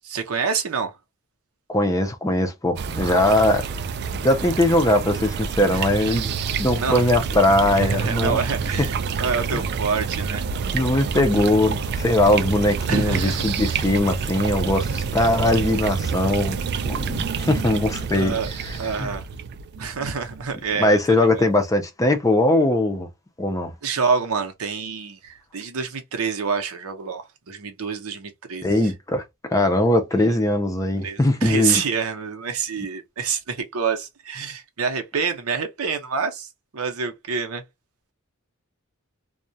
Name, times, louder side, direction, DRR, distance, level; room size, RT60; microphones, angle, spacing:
voice 1, 0.0-0.9 3.0-3.3 5.7-6.2 6.7-7.0 7.8-10.4 12.9-13.6 18.1-18.5 18.8-19.3 19.8-21.4 23.8-28.9 31.0-37.6, right 5 dB, 85° right, 0.7 m, -27 dB
voice 2, 1.7-3.6 4.2-8.4 8.8-8.9 9.5-9.6 10.7-16.6 16.8-18.4 19.0-19.1 20.8-23.1 23.4-23.7 28.6-29.2 29.5-31.8, left 1 dB, 15° left, 0.4 m, -20 dB
sound 1, 2.8-20.9, right 5 dB, 50° right, 0.3 m, -28 dB
2.3 x 2.1 x 2.6 m
head